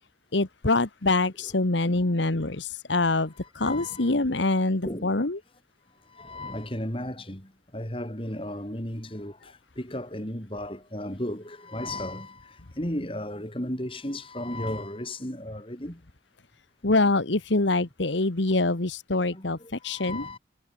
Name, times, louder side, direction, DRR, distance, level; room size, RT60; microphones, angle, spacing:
voice 1, 0.3-5.4 16.8-20.2, left 2 dB, 75° left, 1.5 m, -25 dB
voice 2, 3.6-4.0 4.8-5.1 6.2-7.4 7.7-9.3 9.8-12.3 12.8-15.9 19.3-19.4 19.9-20.4, left 1 dB, 30° left, 4.0 m, -34 dB
head